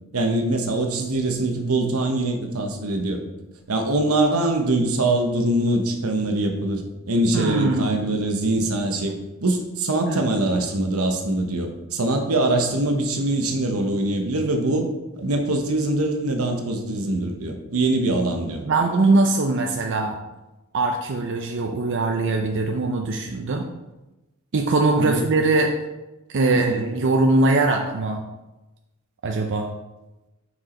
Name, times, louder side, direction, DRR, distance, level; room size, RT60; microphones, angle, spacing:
voice 1, 0.1-3.2 3.7-9.1 9.4-14.9 15.2-18.6 25.0-25.3 26.5-26.9, right 2 dB, 85° right, 4 dB, 1.0 m, -23 dB
voice 2, 7.3-8.2 10.1-10.3 18.6-20.2 20.7-23.7 24.5-25.7 26.3-28.2 29.2-29.7, right 2 dB, 60° right, 2 dB, 0.6 m, -21 dB
6.3 x 4.8 x 4.3 m, 1.0 s
head